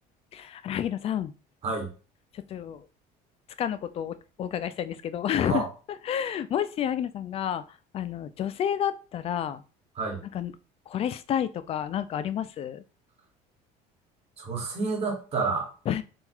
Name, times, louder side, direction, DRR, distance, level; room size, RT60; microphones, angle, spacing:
voice 1, 0.3-1.3 2.5-2.8 3.6-5.6 6.0-7.6 7.9-9.6 10.3-10.5 10.9-12.8 15.9-16.0, left 9 dB, 40° left, 13 dB, 0.4 m, -30 dB
voice 2, 14.4-15.7, right 4 dB, 40° right, 1 dB, 1.5 m, -29 dB
3.8 x 2.5 x 4.4 m, 0.35 s
cardioid pair, 135°, 16 cm